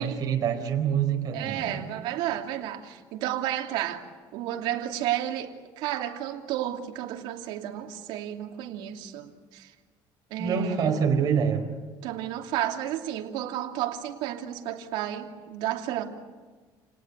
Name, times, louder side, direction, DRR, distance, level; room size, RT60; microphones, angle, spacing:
voice 1, 0.0-1.8 10.4-11.7, right 7 dB, 50° right, 4 dB, 4.5 m, -26 dB
voice 2, 1.3-4.0 4.3-9.7 10.3-10.9 12.0-16.0, right 12 dB, 85° right, 3 dB, 2.8 m, -32 dB
29.5 x 18.5 x 9.7 m, 1.4 s
cardioid pair, 135°, 8 cm